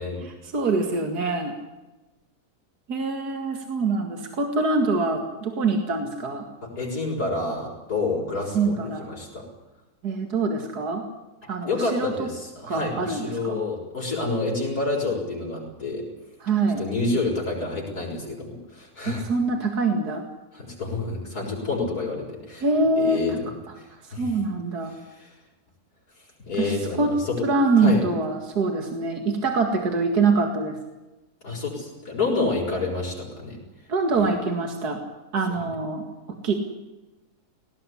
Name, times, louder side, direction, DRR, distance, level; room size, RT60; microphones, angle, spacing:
voice 1, 0.2-1.5 2.9-6.5 8.5-9.1 10.0-11.0 11.5-12.3 12.7-13.6 16.4-16.8 19.0-20.2 22.6-23.4 24.2-25.0 26.6-27.1 27.4-30.8 33.9-35.0 35.3-36.5, right 3 dB, 75° right, 4 dB, 2.6 m, -24 dB
voice 2, 6.6-9.4 11.7-16.0 16.8-19.3 20.5-22.6 23.0-24.4 24.9-25.3 26.5-27.5 27.8-28.0 31.4-33.6 35.5-35.6, left 3 dB, 65° left, -6 dB, 6.5 m, -29 dB
18.5 x 18.5 x 9.9 m, 1.1 s
omnidirectional pair, 1.7 m